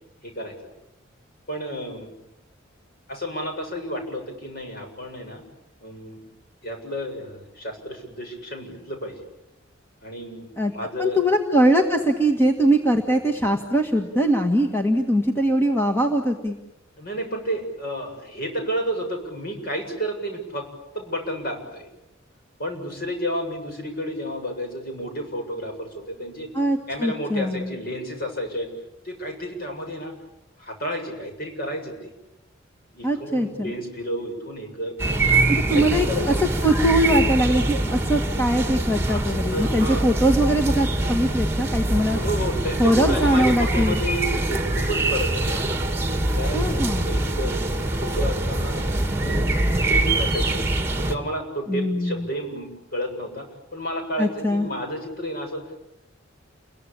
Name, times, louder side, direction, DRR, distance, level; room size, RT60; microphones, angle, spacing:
voice 1, 0.2-0.5 1.5-2.1 3.1-5.4 5.8-6.2 6.6-9.2 10.0-11.2 17.0-20.7 20.9-21.9 22.6-26.5 26.9-28.7 29.0-30.1 30.6-32.1 32.9-35.4 35.7-36.3 39.1-40.1 42.1-45.7 46.4-48.8 49.2-49.4 49.7-50.7 51.0-53.5 53.7-55.7, equal, 45° left, 3 dB, 7.3 m, -31 dB
voice 2, 11.0-16.6 26.5-27.7 33.0-33.7 35.5-36.3 36.6-42.2 42.8-44.0 46.5-47.1 51.7-52.3 54.2-54.7, right 1 dB, 10° left, 3 dB, 1.7 m, -21 dB
sound 1, 35.0-51.2, right 2 dB, 10° right, 2.2 m, -24 dB
30.0 x 22.5 x 8.8 m, 0.94 s
head